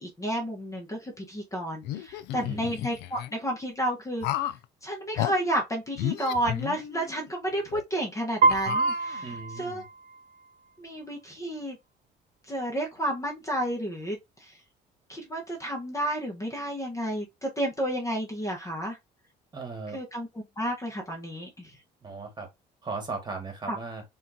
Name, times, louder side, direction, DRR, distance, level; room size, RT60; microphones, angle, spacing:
voice 1, 0.0-4.5 4.8-9.3 9.6-9.8 10.8-11.8 12.5-14.6 15.1-19.0 19.9-20.3 20.6-21.8 23.7-23.8, right 1 dB, 20° left, 1.4 m, -31 dB
sound 1, 1.8-3.3 4.2-4.6 5.2-5.3 6.0-7.2 7.7-7.8 8.5-9.4, left 13 dB, 90° left, 0.4 m, -33 dB
voice 2, 2.3-2.7 9.2-9.8 19.5-20.0 22.0-22.5 22.8-24.0, right 4 dB, 25° right, 2.1 m, -37 dB
Piano, 8.4-10.5, right 3 dB, 50° right, 0.7 m, -26 dB
4.2 x 3.9 x 2.9 m
cardioid pair, 110°, 17 cm